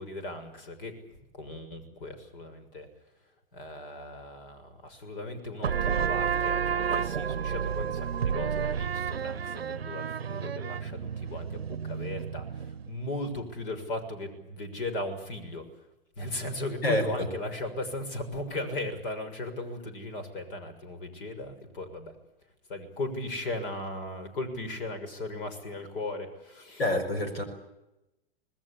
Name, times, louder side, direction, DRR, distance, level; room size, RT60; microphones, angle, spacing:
voice 1, 0.0-2.9 3.5-15.7 16.2-22.1 22.7-26.8, left 2 dB, 65° left, 10 dB, 6.7 m, -37 dB
sound 1, 5.6-12.9, right 7 dB, 90° right, 0.8 m, -31 dB
voice 2, 26.8-27.4, left 1 dB, 80° left, 9 dB, 5.8 m, -26 dB
26.0 x 20.5 x 8.6 m, 0.93 s
hypercardioid pair, 100°, 29 cm